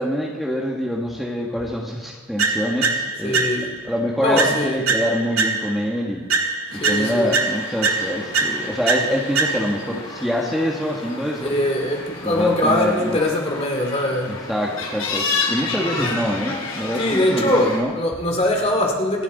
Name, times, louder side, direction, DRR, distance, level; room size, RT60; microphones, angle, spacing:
voice 1, 0.0-3.5 3.8-6.3 6.7-11.6 12.2-13.2 14.3-17.9, equal, ahead, -3 dB, 1.6 m, -25 dB
sound 1, 2.4-3.9 4.4-5.9 6.3-9.9, right 3 dB, 85° right, 1.8 m, -23 dB
voice 2, 3.2-3.7 4.2-4.8 6.7-7.3 11.4-14.4 16.0-16.2 17.0-19.2, left 1 dB, 30° left, 2 dB, 2.3 m, -22 dB
sound 2, 6.7-17.8, left 3 dB, 75° left, 4.7 m, -31 dB
27.5 x 12.0 x 4.2 m, 1.3 s
head